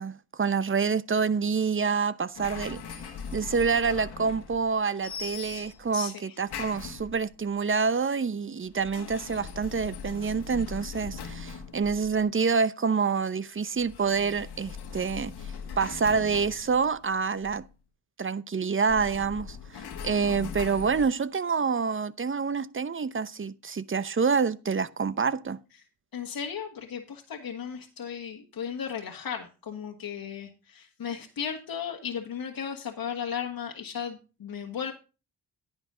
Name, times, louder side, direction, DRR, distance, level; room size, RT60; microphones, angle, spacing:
voice 1, 0.0-3.0 3.3-15.3 15.8-17.6 18.2-25.6, right 5 dB, 30° right, 0.8 m, -27 dB
sound 1, 2.3-4.8 5.0-6.0 6.5-7.4 8.7-12.3 13.8-17.7 18.8-21.0, left 6 dB, 80° left, 1.7 m, -40 dB
voice 2, 5.9-6.5 26.1-34.9, left 7 dB, 65° left, 1.6 m, -35 dB
10.5 x 8.9 x 3.8 m
supercardioid pair, 55°, 39 cm